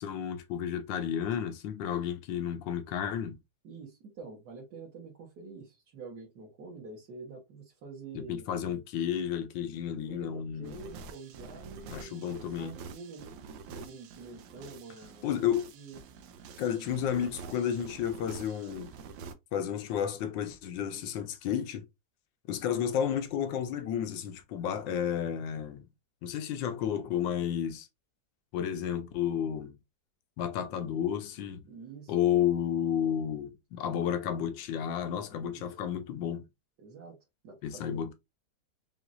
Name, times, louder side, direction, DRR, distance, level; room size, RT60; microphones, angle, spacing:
voice 1, 0.0-3.4 8.1-10.8 11.9-12.8 15.2-15.7 16.6-18.9 19.5-21.8 22.5-25.9 26.2-27.9 28.5-29.8 30.4-31.7 32.1-36.5 37.6-38.1, left 9 dB, 90° left, 1.4 m, -32 dB
voice 2, 3.6-8.4 10.0-12.3 12.6-15.5 15.7-16.0 17.4-17.5 31.7-32.2 35.3-35.8 36.8-37.2 37.4-38.0, right 4 dB, 60° right, 1.8 m, -47 dB
sound 1, 10.6-19.3, right 5 dB, 90° right, 1.4 m, -47 dB
5.8 x 2.5 x 2.5 m
omnidirectional pair, 2.0 m